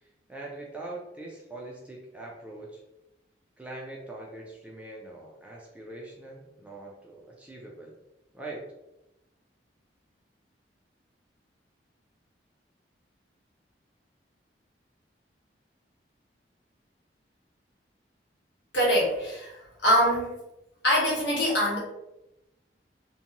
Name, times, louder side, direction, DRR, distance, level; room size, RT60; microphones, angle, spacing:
voice 1, 0.0-2.8 3.6-8.0 8.3-8.6, right 2 dB, 5° right, -3 dB, 0.4 m, -42 dB
voice 2, 18.7-20.4 20.8-21.8, equal, 65° left, -5 dB, 1.1 m, -24 dB
2.6 x 2.2 x 2.8 m, 0.90 s
head